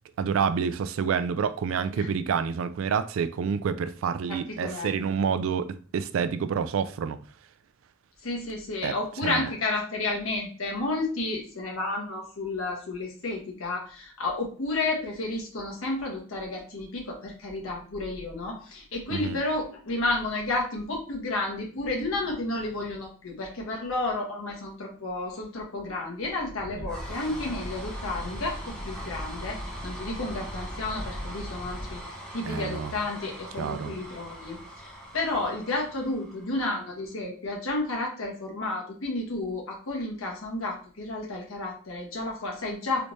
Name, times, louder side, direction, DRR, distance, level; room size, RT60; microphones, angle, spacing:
voice 1, 0.2-7.2 8.8-9.0 9.2-9.5 19.1-19.4 26.8-26.9 32.5-32.9 33.6-33.9, right 6 dB, 75° right, 0.3 m, -28 dB
voice 2, 4.3-5.0 8.2-32.0 32.3-43.1, left 2 dB, 85° left, 1.1 m, -31 dB
sound 1, 26.4-36.9, equal, 5° left, 0.9 m, -39 dB
3.2 x 3.1 x 2.7 m
head